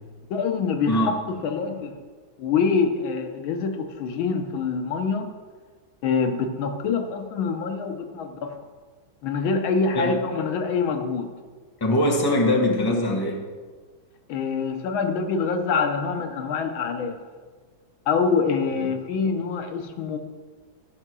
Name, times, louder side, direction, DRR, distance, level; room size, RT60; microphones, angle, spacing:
voice 1, 0.3-1.1 1.4-2.0 2.4-5.3 6.0-8.5 9.2-11.3 14.3-17.2 18.1-20.2, left 5 dB, 85° left, 6 dB, 1.7 m, -25 dB
voice 2, 11.8-13.4, left 1 dB, 15° left, 0 dB, 1.2 m, -22 dB
14.0 x 5.6 x 6.1 m, 1.5 s
omnidirectional pair, 2.1 m